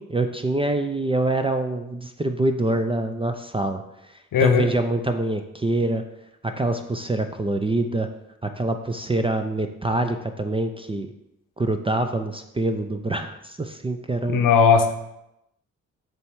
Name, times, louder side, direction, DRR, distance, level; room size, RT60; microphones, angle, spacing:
voice 1, 0.0-3.8 4.4-6.0 6.4-8.1 8.4-11.1 11.6-14.5, right 2 dB, 15° right, 6 dB, 0.5 m, -25 dB
voice 2, 4.3-4.7 14.3-14.9, left 6 dB, 55° left, 6 dB, 0.9 m, -17 dB
7.6 x 3.2 x 4.6 m, 0.86 s
hypercardioid pair, 40°, 40 cm